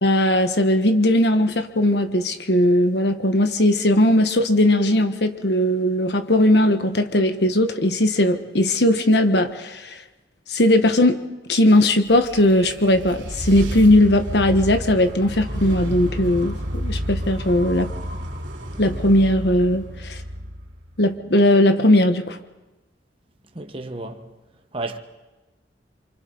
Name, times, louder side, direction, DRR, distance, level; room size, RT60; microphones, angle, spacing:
voice 1, 0.0-10.0 10.5-11.2 11.5-17.9 18.8-20.2 21.0-22.4, left 1 dB, 65° left, 1.3 m, -18 dB
sound 1, 11.9-21.1, equal, 75° right, 3.0 m, -31 dB
voice 2, 23.5-24.3 24.7-25.0, right 2 dB, 30° right, 1.2 m, -31 dB
28.5 x 24.5 x 4.0 m
head